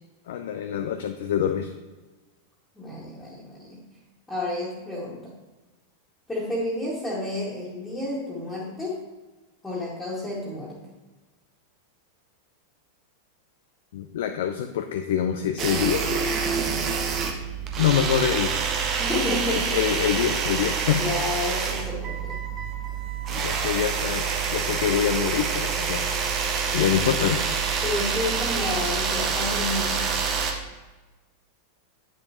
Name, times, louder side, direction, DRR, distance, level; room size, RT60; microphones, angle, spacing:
voice 1, 0.3-1.7 13.9-16.5 17.8-18.6 19.5-21.1 23.3-26.2 26.7-27.4, left 9 dB, 55° left, 6 dB, 0.5 m, -25 dB
voice 2, 2.8-3.8 4.3-5.3 6.3-8.9 9.6-10.8 19.0-19.6 20.9-22.4 27.8-30.1, left 2 dB, 10° left, -7 dB, 2.0 m, -30 dB
sound 1, 15.6-30.5, right 6 dB, 30° right, 1.1 m, -27 dB
9.7 x 6.8 x 3.0 m, 1.2 s
figure-of-eight pair, 90°, 0 cm